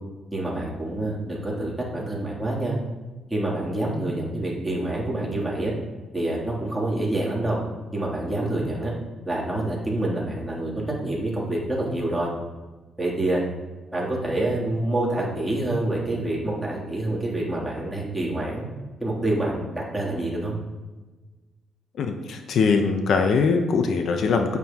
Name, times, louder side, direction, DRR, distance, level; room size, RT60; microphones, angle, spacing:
voice 1, 0.3-2.7 3.3-5.7 6.1-7.6 7.9-8.9 9.2-12.3 13.0-13.4 13.9-18.7 19.0-20.6, right 1 dB, 10° right, -5 dB, 3.1 m, -27 dB
voice 2, 22.0-24.6, left 5 dB, 65° left, 5 dB, 0.9 m, -22 dB
9.3 x 8.6 x 3.0 m, 1.2 s
cardioid pair, 90°, 0 cm